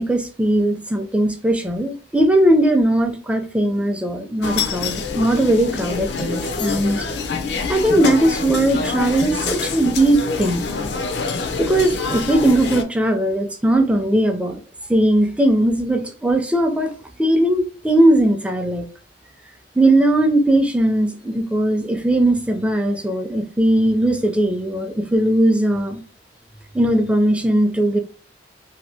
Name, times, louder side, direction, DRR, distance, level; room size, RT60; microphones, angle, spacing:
voice 1, 0.0-7.1 7.7-10.7 11.6-14.6 14.9-16.9 17.2-18.9 19.8-26.0 26.7-28.0, right 1 dB, 5° right, 0.4 m, -18 dB
sound 1, 4.4-12.8, left 4 dB, 75° left, 0.5 m, -25 dB
2.8 x 2.6 x 3.3 m
head